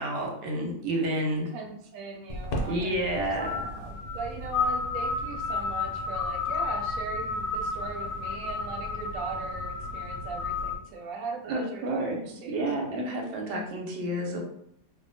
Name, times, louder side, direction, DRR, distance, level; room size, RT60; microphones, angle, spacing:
voice 1, 0.0-1.5 2.7-3.7 11.4-14.4, right 1 dB, 90° right, 0 dB, 1.2 m, -30 dB
voice 2, 1.5-12.9, right 4 dB, 65° right, 2 dB, 0.9 m, -40 dB
sound 1, 2.3-10.8, left 3 dB, 75° left, 1.1 m, -32 dB
2.7 x 2.2 x 2.6 m, 0.71 s
omnidirectional pair, 1.8 m